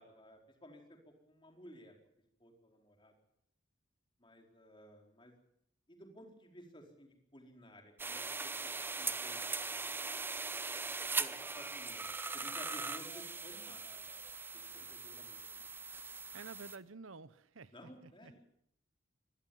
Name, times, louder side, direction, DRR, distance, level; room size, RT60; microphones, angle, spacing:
voice 1, 0.0-2.0 2.4-3.1 4.2-5.3 5.9-8.7 9.0-10.0 10.8-10.9 11.2-14.2 14.5-15.6 17.7-18.4, equal, 25° left, 3 dB, 4.4 m, -56 dB
sound 1, 8.0-16.8, right 4 dB, 10° right, 0.8 m, -40 dB
voice 2, 16.3-17.7 18.0-18.4, right 4 dB, 75° right, 16 dB, 0.9 m, -51 dB
23.5 x 18.5 x 7.2 m, 0.71 s
head